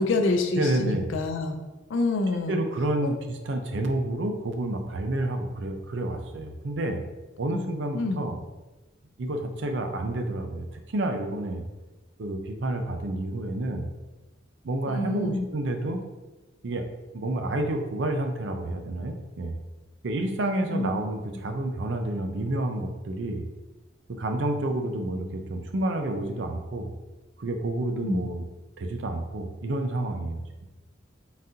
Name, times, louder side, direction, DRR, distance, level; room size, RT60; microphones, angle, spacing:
voice 1, 0.0-1.6 1.9-2.6 3.0-3.1 7.5-7.7 7.9-8.2 14.9-15.5 20.7-20.9 28.0-28.3, left 2 dB, 85° left, 6 dB, 0.5 m, -27 dB
voice 2, 0.6-1.1 2.3-7.0 7.4-8.4 9.2-11.6 12.2-13.9 14.6-16.0 16.6-16.8 17.1-19.6 20.0-23.4 24.1-26.9 27.4-28.4 28.8-30.4, right 1 dB, 70° right, 5 dB, 0.5 m, -29 dB
4.0 x 3.6 x 2.7 m, 1.1 s
head